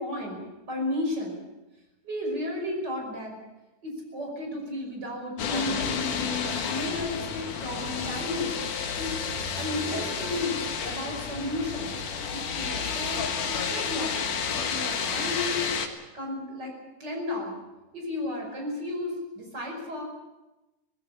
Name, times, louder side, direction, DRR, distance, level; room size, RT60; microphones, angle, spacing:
voice 1, 0.0-1.4 2.0-3.4 3.8-8.5 9.0-9.2 9.6-10.6 10.8-11.9 12.3-15.6 16.1-16.7 17.0-17.6 17.9-20.0, left 1 dB, 30° right, 0 dB, 6.1 m, -33 dB
sound 1, 5.4-15.9, left 6 dB, 75° left, 3.2 m, -31 dB
20.0 x 15.5 x 10.0 m, 1.0 s
omnidirectional pair, 3.7 m